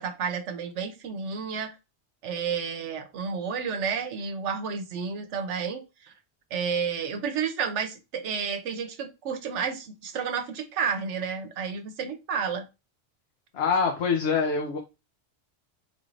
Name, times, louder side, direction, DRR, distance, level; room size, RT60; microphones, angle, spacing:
voice 1, 0.0-1.7 2.2-6.1 6.5-12.6, right 6 dB, 85° right, 7 dB, 1.0 m, -31 dB
voice 2, 13.5-14.8, left 5 dB, 65° left, 2 dB, 0.9 m, -25 dB
4.0 x 2.5 x 3.1 m, 0.27 s
omnidirectional pair, 1.2 m